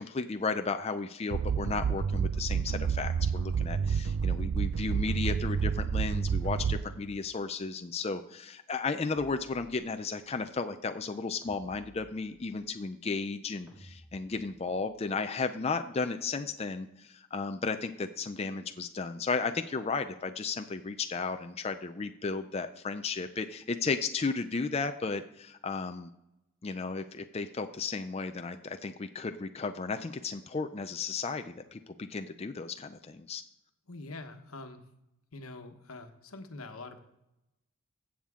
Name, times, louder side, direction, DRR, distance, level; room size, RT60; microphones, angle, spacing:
voice 1, 0.0-26.1 26.6-33.4, left 4 dB, 30° left, 8 dB, 0.4 m, -34 dB
sound 1, 1.3-7.1, right 6 dB, 70° right, 0.4 m, -29 dB
sound 2, 9.1-10.2 11.4-12.7 13.7-14.9, equal, 15° right, 2.2 m, -56 dB
voice 2, 33.9-34.8 35.3-37.0, left 2 dB, 90° left, 7 dB, 1.2 m, -44 dB
15.5 x 7.3 x 3.7 m, 0.88 s
head